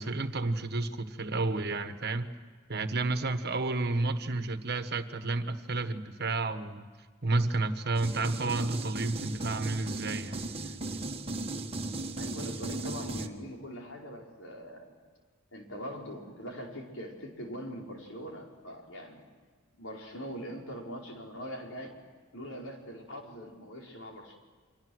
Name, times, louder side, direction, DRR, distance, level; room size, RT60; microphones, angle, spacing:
voice 1, 0.0-2.3 2.7-6.9 7.2-10.4, right 3 dB, 50° right, 9 dB, 1.5 m, -31 dB
sound 1, 7.9-13.3, right 2 dB, 30° right, 1.5 m, -36 dB
voice 2, 12.2-14.9 15.5-19.3 19.8-21.9 22.3-24.4, equal, 75° left, 0 dB, 5.1 m, -42 dB
30.0 x 25.0 x 6.4 m, 1.5 s
head